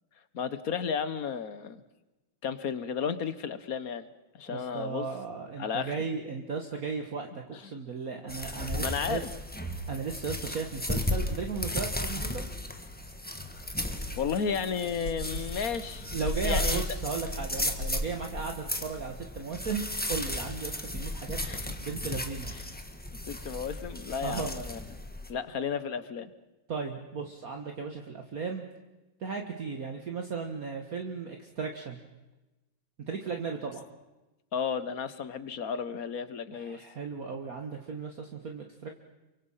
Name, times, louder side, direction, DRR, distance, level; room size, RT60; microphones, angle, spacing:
voice 1, 0.3-1.8 2.4-4.1 4.3-5.1 5.6-5.9 8.8-9.3 14.2-16.8 21.4-21.7 23.3-24.8 25.3-26.3 34.5-36.8, left 6 dB, 50° left, 13 dB, 1.4 m, -33 dB
voice 2, 4.5-9.2 9.9-12.5 16.1-21.4 21.8-22.5 24.2-24.6 26.7-28.6 29.2-32.0 33.0-33.8 36.5-38.9, right 5 dB, 45° right, 3 dB, 1.9 m, -36 dB
sound 1, 8.3-25.3, left 1 dB, 5° left, 1.2 m, -35 dB
sound 2, 12.9-13.0 13.5-18.5, left 1 dB, 65° left, 4.5 m, -36 dB
29.0 x 24.0 x 5.7 m, 1.1 s
omnidirectional pair, 2.2 m